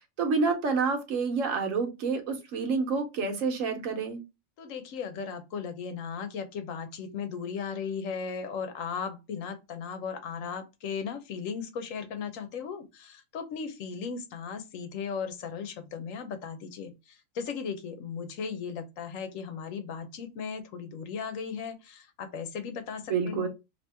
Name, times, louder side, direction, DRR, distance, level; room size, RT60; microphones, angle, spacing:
voice 1, 0.2-4.2 23.1-23.5, right 4 dB, 70° right, 1.2 m, -28 dB
voice 2, 4.6-23.5, left 6 dB, 75° left, 1.0 m, -36 dB
3.0 x 2.8 x 3.3 m
omnidirectional pair, 1.4 m